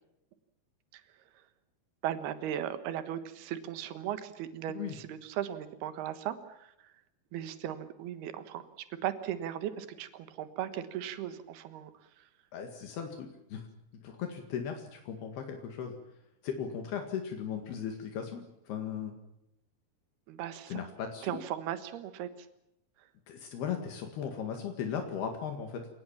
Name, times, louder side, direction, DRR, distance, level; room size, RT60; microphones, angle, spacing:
voice 1, 2.0-6.7 7.3-11.9 20.3-20.8 21.2-22.3, right 11 dB, 75° right, 11 dB, 3.4 m, -37 dB
voice 2, 12.5-13.6 14.0-15.9 16.4-19.2 20.7-21.3 23.3-25.9, left 7 dB, 75° left, 4 dB, 4.0 m, -37 dB
28.5 x 18.5 x 7.4 m, 0.84 s
omnidirectional pair, 4.6 m